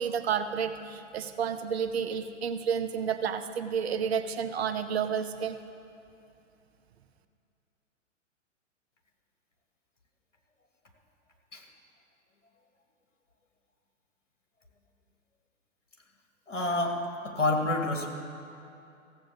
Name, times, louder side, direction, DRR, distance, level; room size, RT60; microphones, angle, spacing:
voice 1, 0.0-5.6, right 7 dB, 55° right, 9 dB, 0.8 m, -30 dB
voice 2, 16.5-18.1, left 2 dB, 70° left, 2 dB, 2.0 m, -28 dB
15.0 x 7.7 x 6.9 m, 2.6 s
figure-of-eight pair, 110°, 38 cm